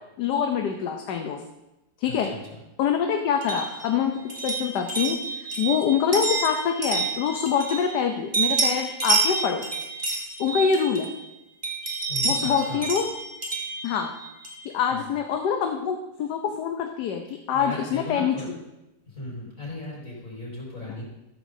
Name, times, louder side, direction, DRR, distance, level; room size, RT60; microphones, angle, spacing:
voice 1, 0.2-1.4 2.0-2.4 2.8-9.6 10.4-11.1 12.2-13.0 13.8-14.2 14.6-17.2 17.5-18.3, left 7 dB, 75° left, 4 dB, 1.4 m, -25 dB
voice 2, 2.0-2.6 12.1-12.8 14.9-15.1 17.3-18.5 19.1-21.0, left 1 dB, 50° left, -6 dB, 5.5 m, -37 dB
sound 1, 3.4-8.0 8.3-11.3 11.6-14.7, right 3 dB, 25° right, 1.9 m, -29 dB
14.0 x 12.5 x 2.7 m, 0.96 s
omnidirectional pair, 1.8 m